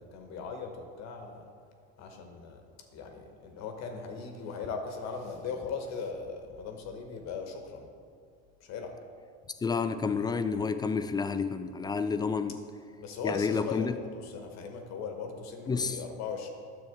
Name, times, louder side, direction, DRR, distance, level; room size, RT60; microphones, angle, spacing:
voice 1, 0.0-1.4 2.0-2.6 2.9-7.9 8.6-8.9 13.0-16.5, left 5 dB, 55° left, 4 dB, 1.2 m, -39 dB
voice 2, 9.6-12.6 13.2-14.0 15.7-16.0, left 5 dB, 15° left, 10 dB, 0.3 m, -30 dB
9.8 x 7.1 x 3.6 m, 2.3 s
supercardioid pair, 90°, 32 cm